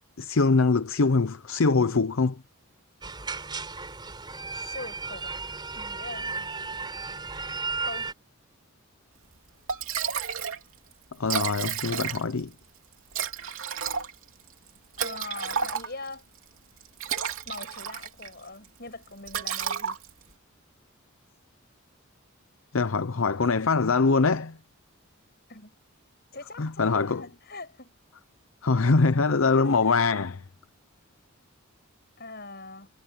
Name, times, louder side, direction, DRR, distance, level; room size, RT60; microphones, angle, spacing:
voice 1, 0.2-2.4 11.2-12.5 22.7-24.6 26.6-27.2 28.6-30.4, left 4 dB, 70° left, 0.7 m, -23 dB
sound 1, 3.0-8.1, right 4 dB, 20° right, 4.1 m, -34 dB
voice 2, 4.6-5.4 5.7-6.9 7.8-8.1 15.0-16.3 17.5-20.0 25.5-25.8 26.3-27.9 29.6-30.0 32.2-32.9, left 3 dB, 45° left, 7.8 m, -42 dB
Liquid, 9.3-9.4 9.7-10.6 10.9-11.0 11.2-12.4 13.1-16.1 16.8-18.3 18.6-18.9 19.3-20.3, right 7 dB, 70° right, 3.0 m, -31 dB
head